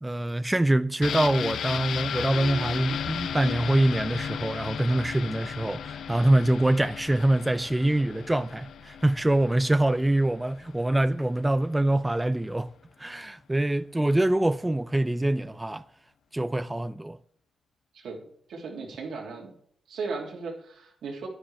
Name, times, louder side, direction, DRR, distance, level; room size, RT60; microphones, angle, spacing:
voice 1, 0.0-12.7 13.0-15.9 16.3-17.2, right 1 dB, 15° right, 0.4 m, -25 dB
sound 1, 1.0-10.6 11.0-11.1, left 8 dB, 80° left, 0.3 m, -35 dB
sound 2, 10.7-10.9, right 5 dB, 70° right, 2.4 m, -49 dB
voice 2, 17.9-19.5 19.9-21.3, right 4 dB, 85° right, 2.8 m, -36 dB
10.0 x 9.9 x 3.4 m
cardioid pair, 80°, 0 cm